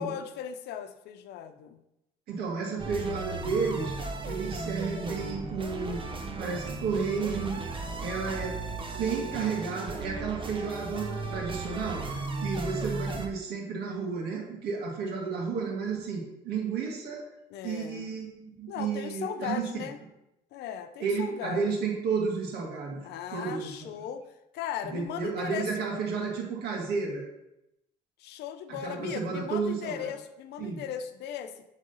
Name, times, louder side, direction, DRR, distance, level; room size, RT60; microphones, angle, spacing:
voice 1, 0.0-1.8 8.1-9.0 11.4-11.5 17.5-18.1 18.7-20.0 20.5-21.6 23.0-25.7 28.2-31.6, left 9 dB, 80° left, 9 dB, 0.7 m, -38 dB
voice 2, 2.3-3.9 4.3-6.0 6.4-8.6 9.0-17.2 17.6-19.8 21.0-23.0 23.3-23.9 24.8-27.2 28.8-30.1 30.6-30.8, right 5 dB, 70° right, 0 dB, 1.7 m, -32 dB
sound 1, 2.8-13.3, right 3 dB, 30° right, 0.9 m, -36 dB
7.6 x 3.6 x 5.5 m, 0.87 s
cardioid pair, 110°, 17 cm